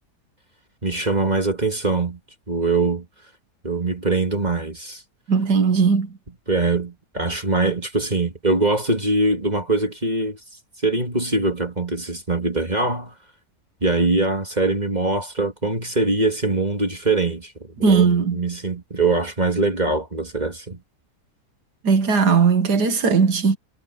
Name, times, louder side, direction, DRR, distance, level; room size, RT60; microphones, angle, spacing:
voice 1, 0.8-2.2 2.5-3.1 3.6-5.0 6.5-10.4 10.8-13.1 13.8-20.8, right 2 dB, 25° right, 2.5 m, -22 dB
voice 2, 5.3-6.1 17.8-18.4 21.8-23.6, right 5 dB, 75° right, 2.4 m, -18 dB
omnidirectional pair, 1.7 m